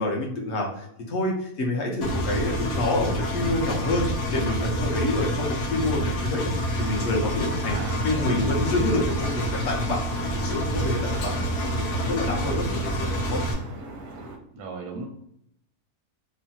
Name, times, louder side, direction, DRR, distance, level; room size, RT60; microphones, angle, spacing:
voice 1, 0.0-7.8 8.0-13.4, left 2 dB, 60° left, 0 dB, 0.8 m, -28 dB
Engine, 2.0-13.5, equal, 85° left, 1.2 m, -27 dB
voice 2, 7.6-8.5 14.5-15.0, right 4 dB, 85° right, 1 dB, 1.1 m, -36 dB
sound 1, 8.5-14.4, right 3 dB, 65° right, 0.7 m, -40 dB
3.2 x 2.0 x 2.6 m, 0.74 s
omnidirectional pair, 1.6 m